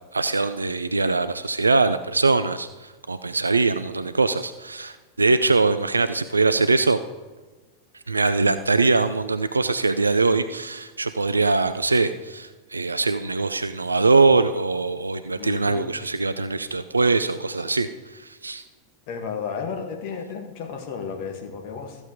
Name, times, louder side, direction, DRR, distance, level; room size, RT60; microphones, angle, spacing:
voice 1, 0.1-7.0 7.9-18.6, right 3 dB, 80° right, 11 dB, 0.4 m, -22 dB
voice 2, 15.4-15.9 19.1-22.0, left 6 dB, 45° left, 4 dB, 1.9 m, -33 dB
14.0 x 7.3 x 5.1 m, 1.3 s
figure-of-eight pair, 90°, 0 cm